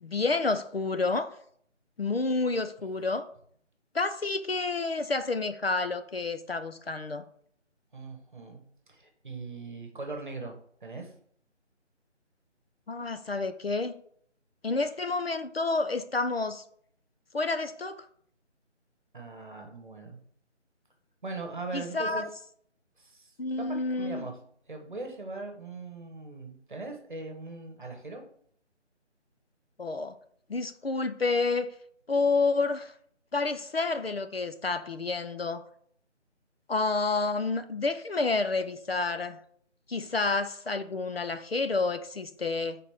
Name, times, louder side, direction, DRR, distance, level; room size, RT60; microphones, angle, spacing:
voice 1, 0.0-1.3 2.0-3.3 3.9-7.2 12.9-13.9 14.6-16.6 17.3-18.0 21.7-22.3 23.4-24.3 29.8-30.2 30.5-31.7 32.1-32.9 33.3-35.6 36.7-39.4 39.9-42.8, left 3 dB, 55° left, 0.5 m, -29 dB
voice 2, 7.9-8.6 8.9-11.1 19.1-20.2 21.2-22.3 23.0-24.4 24.7-28.2, right 3 dB, 40° right, 1.3 m, -40 dB
5.1 x 4.2 x 5.7 m
figure-of-eight pair, 175°, 36 cm